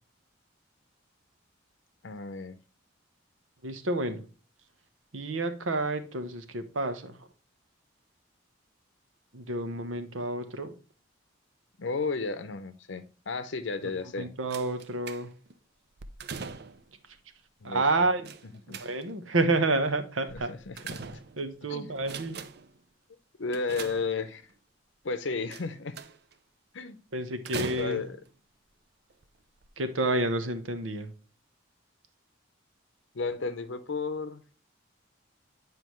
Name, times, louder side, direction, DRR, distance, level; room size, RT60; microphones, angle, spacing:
voice 1, 2.0-2.6 11.8-14.3 17.6-18.1 18.7-18.9 20.3-21.2 21.7-21.9 23.4-24.4 25.0-26.0 26.7-27.0 27.8-28.2 33.1-34.4, left 4 dB, 70° left, 10 dB, 0.7 m, -33 dB
voice 2, 3.6-4.2 5.1-7.3 9.3-10.7 14.2-15.3 17.6-18.3 18.7-20.5 21.4-22.4 27.1-28.0 29.8-31.1, right 2 dB, 85° right, 9 dB, 1.0 m, -29 dB
sound 1, 14.5-15.5 16.0-16.9 18.3-19.3 20.3-21.6 22.0-22.8 23.5-24.5 25.5-26.3 27.5-28.3 29.1-29.2 29.6-29.7, right 5 dB, 55° right, 0.6 m, -41 dB
9.2 x 4.9 x 3.1 m, 0.37 s
head